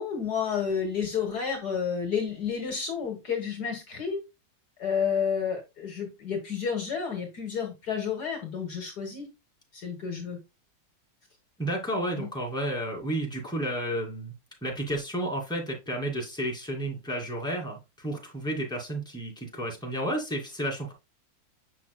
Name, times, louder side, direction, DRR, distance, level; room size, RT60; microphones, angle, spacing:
voice 1, 0.0-4.2 4.8-9.3 9.7-10.4 12.1-12.3, left 7 dB, 60° left, 3 dB, 1.8 m, -30 dB
voice 2, 11.6-14.3 14.6-20.9, right 1 dB, ahead, -2 dB, 2.5 m, -32 dB
7.5 x 5.9 x 2.3 m, 0.24 s
omnidirectional pair, 2.0 m